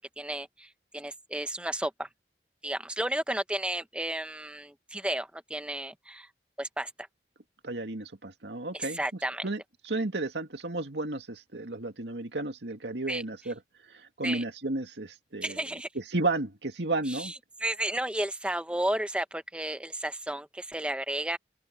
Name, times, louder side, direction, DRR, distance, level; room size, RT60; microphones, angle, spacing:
voice 1, 0.2-2.1 2.6-6.3 6.6-6.9 8.7-9.4 13.1-13.2 14.2-14.4 15.4-15.9 17.1-17.3 17.6-21.4, right 1 dB, 5° right, 0.9 m, -33 dB
voice 2, 7.6-9.0 9.4-13.6 13.9-15.6 15.9-17.3, right 2 dB, 85° right, 2.2 m, -33 dB
open air
head